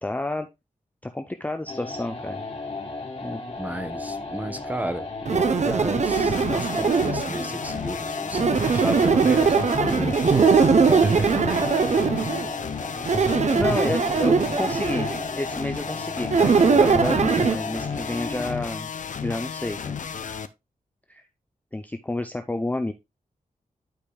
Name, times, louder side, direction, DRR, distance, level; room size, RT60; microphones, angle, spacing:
voice 1, 0.0-0.5 1.0-2.5 3.2-3.4 13.6-18.9 19.2-20.0 21.1-21.2 21.7-22.9, left 2 dB, 10° left, 0.5 m, -30 dB
sound 1, 1.7-18.7, left 3 dB, 40° left, 2.0 m, -35 dB
voice 2, 3.6-11.7, right 1 dB, 10° right, 0.9 m, -33 dB
sound 2, 5.3-7.5 8.3-12.5 13.0-15.2 16.3-17.6, right 5 dB, 55° right, 0.8 m, -21 dB
sound 3, 6.1-20.5, left 7 dB, 60° left, 0.6 m, -33 dB
11.5 x 5.1 x 2.3 m
wide cardioid pair, 135°, 15 cm